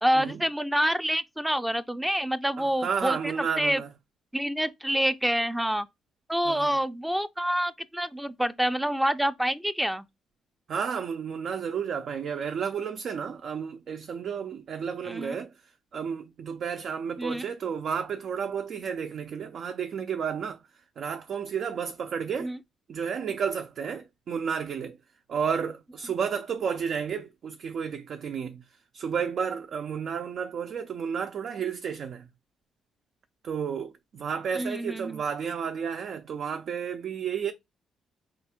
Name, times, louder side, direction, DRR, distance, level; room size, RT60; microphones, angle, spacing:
voice 1, 0.0-3.8 4.3-5.9 6.3-10.1 15.0-15.4 17.2-17.5 22.4-22.6 34.5-35.2, equal, 5° right, 0.5 m, -27 dB
voice 2, 2.6-3.9 6.5-6.8 10.7-15.5 15.9-20.6 21.0-22.5 22.9-25.0 25.3-28.6 28.9-32.2 33.4-37.5, right 7 dB, 60° right, 0.5 m, -32 dB
4.4 x 2.5 x 4.3 m
cardioid pair, 90°, 0 cm